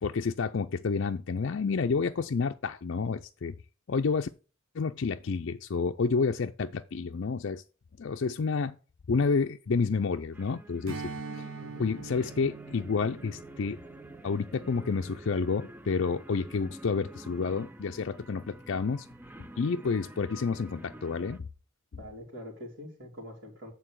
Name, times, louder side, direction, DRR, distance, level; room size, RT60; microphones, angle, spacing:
voice 1, 0.0-3.5 3.9-4.3 4.7-7.6 8.0-8.8 9.1-11.5 11.8-13.8 14.2-19.1 19.6-21.5, left 4 dB, 60° left, 0.4 m, -29 dB
sound 1, 10.3-21.4, right 1 dB, 10° right, 0.4 m, -48 dB
Strum, 10.9-15.6, right 4 dB, 75° right, 1.0 m, -44 dB
voice 2, 11.6-12.0 22.0-23.7, equal, 55° right, 2.8 m, -44 dB
8.9 x 3.9 x 6.1 m
head